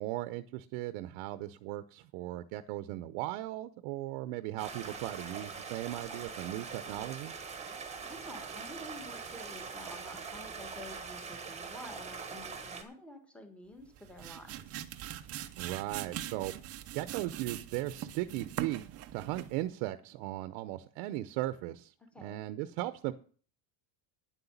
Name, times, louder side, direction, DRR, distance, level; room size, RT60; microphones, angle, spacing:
voice 1, 0.0-7.3 15.6-16.5 16.9-18.8 19.1-21.9 22.2-23.1, right 16 dB, 80° right, 12 dB, 0.9 m, -37 dB
Stream, 4.6-12.8, right 5 dB, 15° right, 1.3 m, -43 dB
voice 2, 7.8-14.8 22.1-22.4, left 1 dB, ahead, 5 dB, 1.5 m, -50 dB
sound 1, 13.8-19.6, right 12 dB, 30° right, 0.6 m, -42 dB
9.9 x 8.0 x 7.2 m, 0.43 s
cardioid pair, 180°, 47 cm